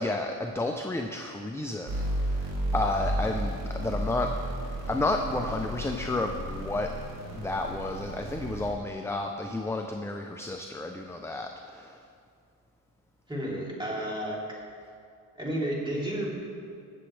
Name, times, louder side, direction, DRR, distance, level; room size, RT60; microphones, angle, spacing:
voice 1, 0.0-4.3 4.9-6.9 7.3-12.0, left 2 dB, 5° left, 3 dB, 0.5 m, -31 dB
sound 1, 1.9-8.7, right 1 dB, 70° right, 3.3 m, -33 dB
voice 2, 13.3-14.4 15.4-16.5, right 1 dB, 10° right, -5 dB, 3.3 m, -32 dB
21.0 x 7.4 x 3.3 m, 2.3 s
cardioid pair, 90°, 37 cm